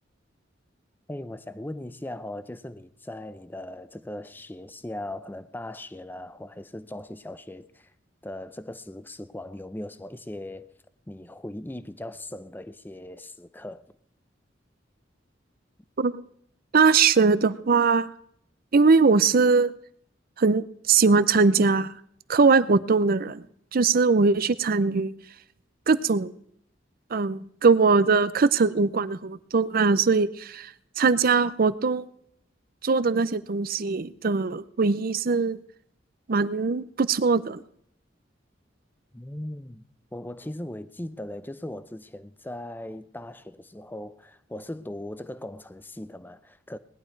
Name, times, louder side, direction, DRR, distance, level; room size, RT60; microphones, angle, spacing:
voice 1, 1.1-7.9 8.2-10.7 11.1-13.9 39.1-39.8 40.1-46.8, left 1 dB, 10° left, 0.6 m, -39 dB
voice 2, 16.7-18.1 18.7-19.7 20.4-21.9 22.3-23.4 23.7-25.1 25.9-26.3 27.1-32.1 32.8-35.6 36.3-37.6, right 4 dB, 50° right, 0.6 m, -21 dB
19.0 x 11.0 x 4.6 m
head